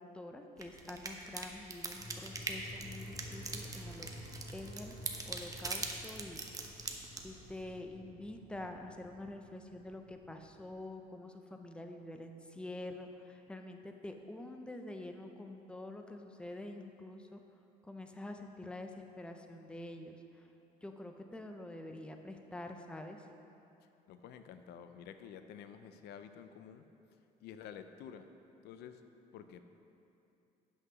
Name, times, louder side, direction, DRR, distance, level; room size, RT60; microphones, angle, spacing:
voice 1, 0.0-4.1 4.5-5.0 5.3-6.9 7.2-17.4 17.8-20.5 20.8-23.3, left 1 dB, 5° left, 5 dB, 0.6 m, -47 dB
sound 1, 0.6-7.6, right 3 dB, 20° right, 0.8 m, -43 dB
sound 2, 2.0-10.8, equal, 50° left, 2.3 m, -51 dB
voice 2, 24.1-26.8 27.4-28.3 28.6-29.0 29.3-29.6, left 8 dB, 75° left, 9 dB, 0.6 m, -50 dB
8.3 x 5.8 x 6.1 m, 2.7 s
cardioid pair, 110°, 17 cm